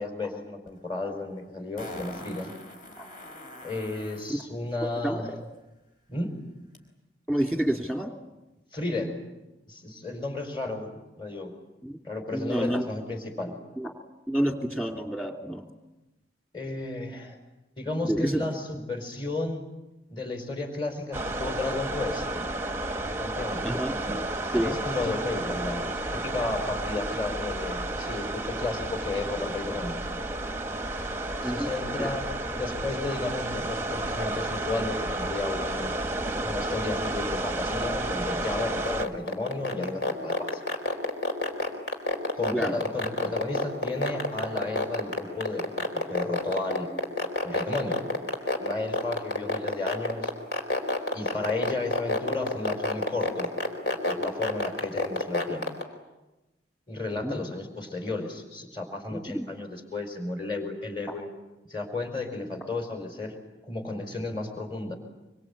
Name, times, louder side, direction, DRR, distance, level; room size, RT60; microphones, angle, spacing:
voice 1, 0.0-2.5 3.6-5.3 6.1-6.3 8.7-9.1 9.7-11.5 12.0-13.6 16.5-17.4 17.8-19.6 20.1-22.3 23.2-23.7 24.6-30.0 31.4-32.2 32.5-36.0 36.4-40.6 42.3-46.9 47.4-48.0 48.6-50.3 51.1-53.5 54.0-55.7 56.9-61.3 61.7-63.3 63.7-64.9, left 2 dB, 25° left, 4 dB, 4.8 m, -33 dB
Fart, 0.7-0.8 1.8-4.3 6.7-6.8, left 1 dB, 45° left, 4.8 m, -43 dB
voice 2, 5.0-5.4 7.3-8.1 11.8-12.0 12.3-12.9 13.8-13.9 14.3-15.6 18.0-18.4 23.6-23.9 24.5-24.7 31.4-31.7 42.5-42.7 57.2-57.4 59.1-59.4, right 1 dB, 5° left, 3 dB, 2.8 m, -28 dB
sound 1, 21.1-39.1, right 1 dB, 15° right, 1.0 m, -31 dB
sound 2, 38.9-55.8, left 1 dB, 60° left, 4.4 m, -26 dB
25.5 x 24.5 x 8.7 m, 1.0 s
head